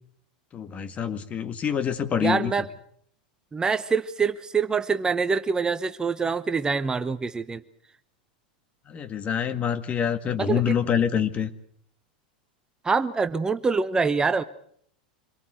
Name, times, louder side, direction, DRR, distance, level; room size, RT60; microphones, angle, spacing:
voice 1, 0.5-2.5 8.9-11.5, left 8 dB, 30° left, 11 dB, 1.8 m, -26 dB
voice 2, 2.2-2.7 3.5-7.6 10.4-10.6 12.8-14.4, right 5 dB, 15° right, 11 dB, 0.9 m, -25 dB
26.0 x 19.0 x 8.0 m, 0.65 s
hypercardioid pair, 95°, 4 cm